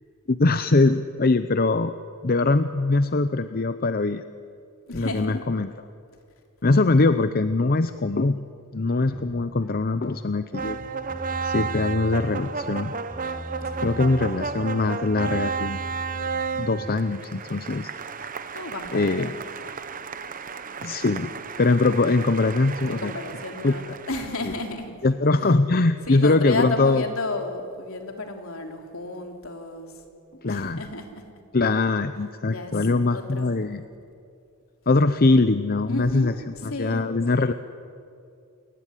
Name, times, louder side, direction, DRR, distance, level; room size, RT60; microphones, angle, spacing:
voice 1, 0.3-1.9 2.2-4.2 4.9-5.7 6.6-8.4 8.7-10.8 11.4-12.9 13.2-13.4 13.8-15.9 16.5-17.9 18.9-19.3 20.8-21.3 21.6-23.1 23.6-23.7 25.0-27.0 30.4-30.8 31.5-33.8 34.9-36.3 36.6-37.5, left 3 dB, 45° left, 11 dB, 0.7 m, -22 dB
voice 2, 4.9-5.4 13.6-13.9 18.5-19.4 22.9-23.8 24.1-24.9 25.4-25.5 26.1-29.9 30.5-31.2 32.5-32.8 33.1-33.6 35.9-37.1, left 2 dB, 70° left, 3 dB, 3.6 m, -32 dB
sound 1, 9.1-17.0, equal, 5° left, 4.0 m, -39 dB
sound 2, 10.5-24.7, right 5 dB, 40° right, 1.0 m, -33 dB
29.5 x 20.5 x 9.9 m, 2.5 s
head